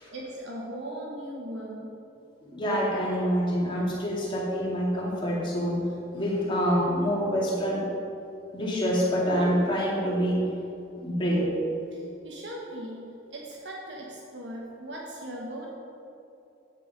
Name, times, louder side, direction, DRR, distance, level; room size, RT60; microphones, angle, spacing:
voice 1, 0.0-1.9 11.9-15.7, right 1 dB, 75° right, -2 dB, 1.3 m, -39 dB
voice 2, 2.5-5.8 6.1-7.9 8.5-10.4 11.0-11.5, equal, 30° left, -5 dB, 2.4 m, -26 dB
9.1 x 8.2 x 5.2 m, 2.7 s
head